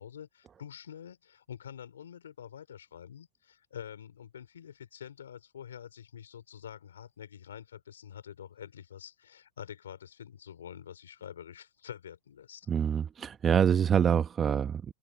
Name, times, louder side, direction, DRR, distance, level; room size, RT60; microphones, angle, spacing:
voice 1, 0.0-12.7, left 9 dB, 90° left, 3.4 m, -47 dB
voice 2, 12.7-14.9, right 8 dB, 25° right, 1.1 m, -26 dB
hypercardioid pair, 105°, 0 cm